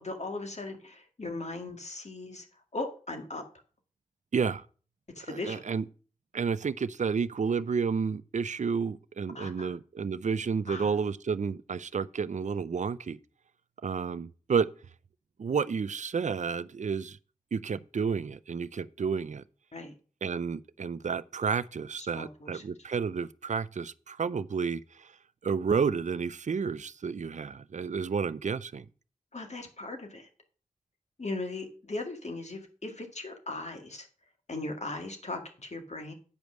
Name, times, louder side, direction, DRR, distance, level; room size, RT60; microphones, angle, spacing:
voice 1, 0.0-2.5 2.7-3.4 5.2-5.6 9.3-9.7 10.7-10.9 19.7-19.9 22.0-22.6 29.3-30.3 31.2-34.1 34.5-36.1, left 2 dB, 55° left, 2.0 m, -38 dB
voice 2, 4.3-4.6 5.2-5.8 6.3-13.2 13.8-14.7 15.4-17.2 17.5-19.4 20.2-25.1 25.4-28.9, right 6 dB, 60° right, 0.5 m, -31 dB
9.3 x 5.2 x 6.2 m
wide cardioid pair, 60°, 14 cm